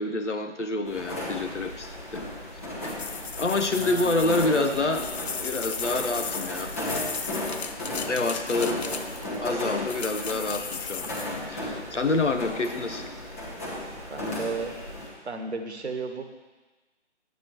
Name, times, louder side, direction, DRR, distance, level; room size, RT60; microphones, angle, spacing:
voice 1, 0.0-2.2 2.8-3.0 3.4-5.1 5.4-6.7 8.1-8.8 9.4-11.2 11.5-13.1, left 2 dB, 85° left, 7 dB, 0.9 m, -27 dB
sound 1, 0.8-15.1, left 1 dB, 15° left, 0.8 m, -35 dB
sound 2, 2.8-9.4 9.9-11.4, left 5 dB, 65° left, 0.6 m, -36 dB
voice 2, 3.6-4.9 8.5-9.0 14.1-14.8 15.2-16.3, right 3 dB, 70° right, 6 dB, 1.2 m, -34 dB
10.5 x 8.2 x 3.0 m, 1.2 s
figure-of-eight pair, 150°, 35 cm